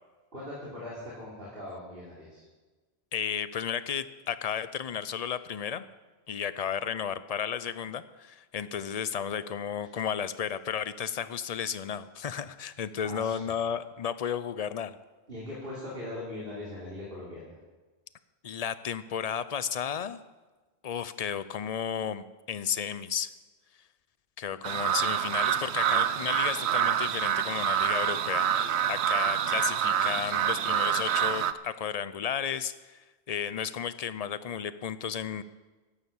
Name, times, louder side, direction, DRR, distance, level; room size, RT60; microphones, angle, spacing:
voice 1, 0.3-2.4 13.0-13.5 15.3-17.6, left 1 dB, 60° right, -6 dB, 3.5 m, -40 dB
voice 2, 3.1-5.9 6.3-14.9 18.4-20.2 20.8-23.3 24.4-33.0 33.3-35.4, left 8 dB, 45° left, 14 dB, 0.6 m, -33 dB
sound 1, 24.6-31.5, right 10 dB, 80° right, 0.9 m, -27 dB
12.5 x 11.5 x 7.2 m, 1.2 s
omnidirectional pair, 1.1 m